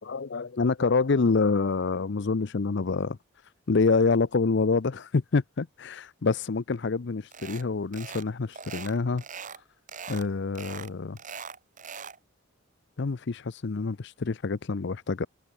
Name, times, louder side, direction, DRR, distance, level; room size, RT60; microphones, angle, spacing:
voice 1, 0.0-3.2 3.7-9.2 10.1-11.2 13.0-15.3, left 4 dB, 55° left, 0.6 m, -26 dB
sound 1, 7.3-7.7 7.9-8.3 8.5-9.6 9.9-10.3 10.6-12.2, right 6 dB, 35° right, 1.9 m, -41 dB
open air
head